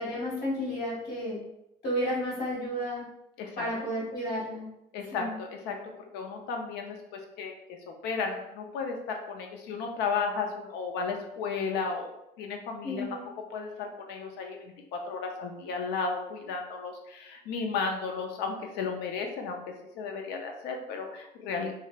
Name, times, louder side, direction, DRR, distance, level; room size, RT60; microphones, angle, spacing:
voice 1, 0.0-1.4 1.8-3.0 3.6-4.6 5.1-5.3 12.8-13.2, equal, 65° left, -6 dB, 1.5 m, -32 dB
voice 2, 4.9-12.1 12.4-13.1 13.5-21.7, left 5 dB, 90° left, 3 dB, 0.5 m, -34 dB
3.0 x 2.0 x 2.2 m, 0.85 s
cardioid pair, 110°, 17 cm